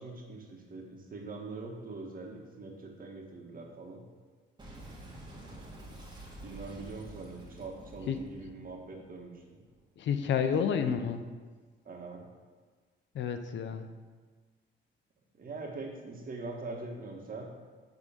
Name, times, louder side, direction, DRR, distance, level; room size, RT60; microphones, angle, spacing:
voice 1, 0.0-4.0 6.4-9.6 11.9-12.2 15.4-17.5, right 3 dB, 45° right, 0 dB, 1.7 m, -43 dB
Boom, 4.6-9.8, right 1 dB, 20° right, 1.8 m, -48 dB
voice 2, 10.0-11.2 13.1-13.9, left 7 dB, 70° left, 8 dB, 0.7 m, -30 dB
8.9 x 3.7 x 6.7 m, 1.4 s
cardioid pair, 90°, 20 cm